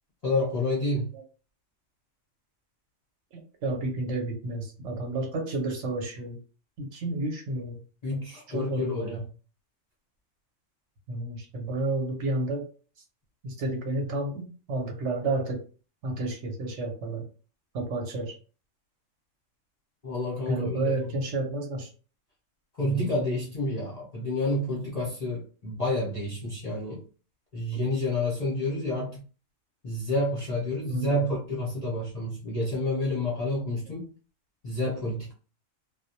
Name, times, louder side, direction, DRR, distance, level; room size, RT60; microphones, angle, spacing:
voice 1, 0.2-1.1 8.0-9.2 20.0-20.9 22.8-27.1 27.5-29.2 29.8-34.1 34.6-35.3, left 1 dB, 40° left, 0.6 m, -29 dB
voice 2, 3.3-6.4 6.8-7.8 8.5-9.2 11.1-12.7 13.4-15.6 16.0-17.2 17.7-18.4 20.5-21.9 22.8-23.4 30.9-31.2, right 2 dB, 65° right, 0.9 m, -31 dB
2.2 x 2.1 x 2.7 m
omnidirectional pair, 1.4 m